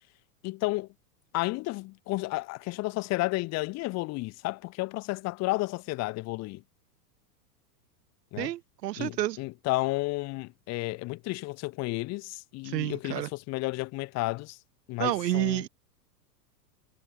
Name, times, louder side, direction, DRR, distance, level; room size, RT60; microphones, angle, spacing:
voice 1, 0.4-0.9 1.3-6.6 8.3-8.5 9.0-14.6 14.9-15.6, left 21 dB, 30° left, 2.0 m, -32 dB
voice 2, 8.4-9.4 12.6-13.3 15.0-15.7, right 14 dB, 80° right, 1.4 m, -29 dB
supercardioid pair, 155°, 48 cm